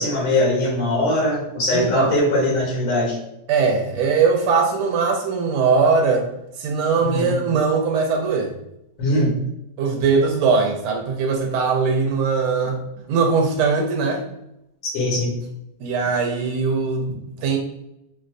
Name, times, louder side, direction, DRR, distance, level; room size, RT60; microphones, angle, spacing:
voice 1, 0.0-3.2 7.0-7.4 9.0-9.3 14.9-15.4, left 1 dB, 80° left, -4 dB, 2.3 m, -21 dB
voice 2, 1.7-2.1 3.5-6.3 6.6-8.5 9.8-12.8 13.1-14.2 15.8-17.6, right 5 dB, 85° right, 1 dB, 1.5 m, -20 dB
4.4 x 2.1 x 2.5 m, 0.83 s
omnidirectional pair, 2.4 m